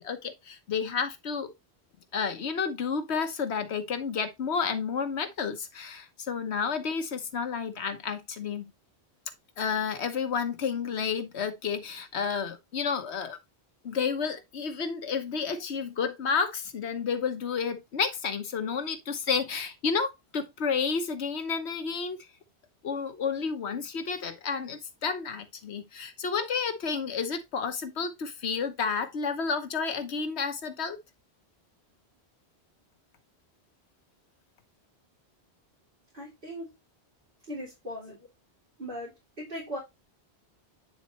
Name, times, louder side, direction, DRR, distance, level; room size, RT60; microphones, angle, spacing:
voice 1, 0.0-1.5 2.1-8.7 9.6-13.4 13.8-22.2 22.8-31.0, left 6 dB, 85° left, 1.3 m, -31 dB
voice 2, 36.1-36.7 37.5-38.2 38.8-39.8, equal, 55° right, 3.0 m, -38 dB
9.2 x 4.2 x 3.0 m
omnidirectional pair, 1.1 m